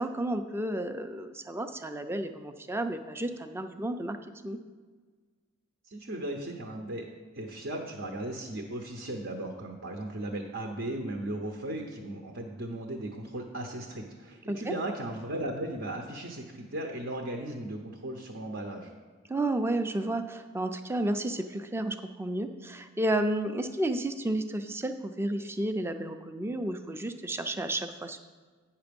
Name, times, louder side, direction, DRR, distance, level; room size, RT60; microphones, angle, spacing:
voice 1, 0.0-4.2 4.4-4.6 14.5-14.7 19.3-28.2, right 1 dB, 10° right, 8 dB, 0.4 m, -32 dB
voice 2, 5.9-7.0 7.3-18.9, right 1 dB, 60° right, 2 dB, 0.8 m, -36 dB
9.0 x 5.7 x 5.3 m, 1.5 s
head